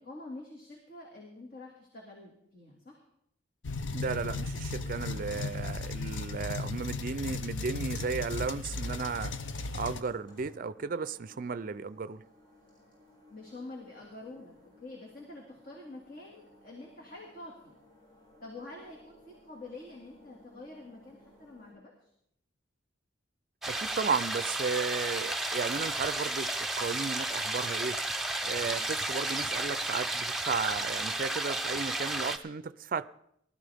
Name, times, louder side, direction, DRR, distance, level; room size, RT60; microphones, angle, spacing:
voice 1, 0.0-3.0 13.3-17.8 18.4-22.1 28.7-28.8, left 2 dB, 50° left, 2.2 m, -47 dB
sound 1, 3.6-10.0, left 3 dB, 75° left, 0.7 m, -36 dB
voice 2, 3.9-9.3 9.7-12.2 23.7-28.0 28.4-33.1, right 5 dB, 45° right, 0.4 m, -34 dB
sound 2, 8.9-21.7, left 1 dB, 25° left, 7.3 m, -59 dB
sound 3, 23.6-32.4, right 2 dB, ahead, 0.6 m, -33 dB
19.5 x 12.5 x 3.5 m
head